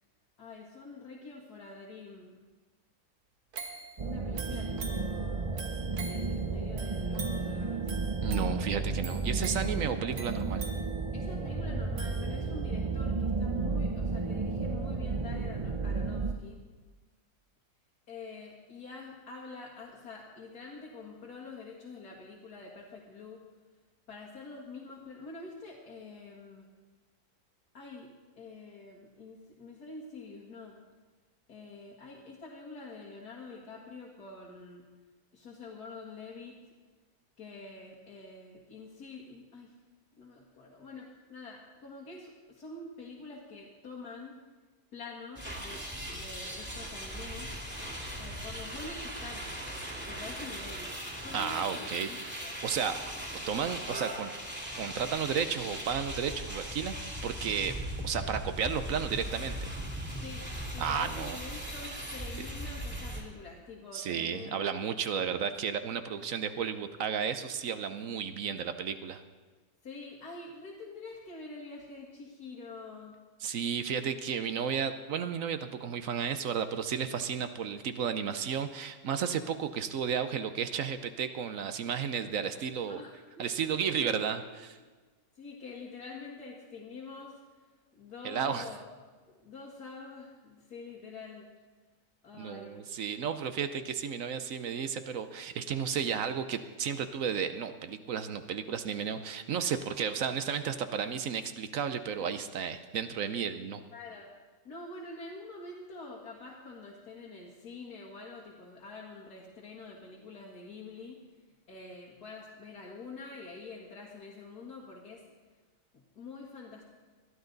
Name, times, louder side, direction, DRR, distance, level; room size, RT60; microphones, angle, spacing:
voice 1, 0.4-2.5 4.0-5.5 6.0-7.9 11.1-16.6 18.1-23.4 24.1-26.7 27.7-28.1 28.3-30.8 31.5-34.9 35.3-36.6 37.4-39.7 40.2-44.4 44.9-45.8 46.1-47.5 48.2-49.6 50.1-52.6 60.2-60.5 60.7-64.7 69.8-73.2 82.9-84.2 85.4-87.4 87.9-88.8 89.3-91.5 92.2-92.8 103.9-104.3 104.6-111.2 111.7-115.2 116.2-116.9, left 3 dB, 85° left, -3 dB, 2.3 m, -46 dB
sound 1, 3.5-12.8 13.3-13.4, right 5 dB, 85° right, 1.8 m, -45 dB
sound 2, 4.0-16.3, right 3 dB, 40° right, 0.4 m, -32 dB
voice 2, 8.2-10.7 51.3-52.1 52.6-53.0 53.5-54.3 54.8-57.7 58.0-59.7 60.8-61.4 63.9-69.2 73.4-83.0 83.4-84.8 88.2-88.7 92.4-103.8, right 7 dB, 65° right, 10 dB, 1.1 m, -33 dB
sound 3, 45.4-63.2, equal, 5° right, 2.2 m, -39 dB
20.5 x 12.5 x 4.0 m, 1.4 s
omnidirectional pair, 1.6 m